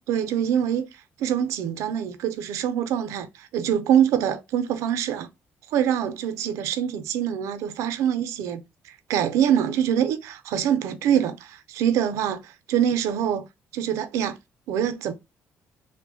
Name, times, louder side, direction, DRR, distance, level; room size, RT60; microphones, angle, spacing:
voice 1, 0.1-0.9 1.2-5.3 5.7-13.5 13.7-14.4 14.7-15.1, right 9 dB, 85° right, 0.4 m, -24 dB
3.0 x 2.0 x 2.6 m
cardioid pair, 120°, 5 cm